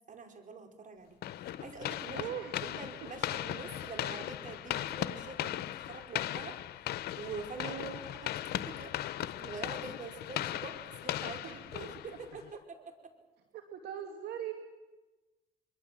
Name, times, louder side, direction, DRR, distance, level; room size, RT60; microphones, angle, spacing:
voice 1, 0.1-2.3 2.6-6.6 7.2-7.7 8.1-8.3 8.6-12.6 12.9-13.1, right 4 dB, 50° right, 5 dB, 5.1 m, -45 dB
sound 1, 1.2-12.5, left 13 dB, 75° left, 1.0 m, -38 dB
voice 2, 2.1-2.5 7.5-8.1 11.4-11.6 13.5-14.5, right 9 dB, 75° right, 4 dB, 2.5 m, -40 dB
24.0 x 23.0 x 7.7 m, 1.1 s
supercardioid pair, 65°, 17 cm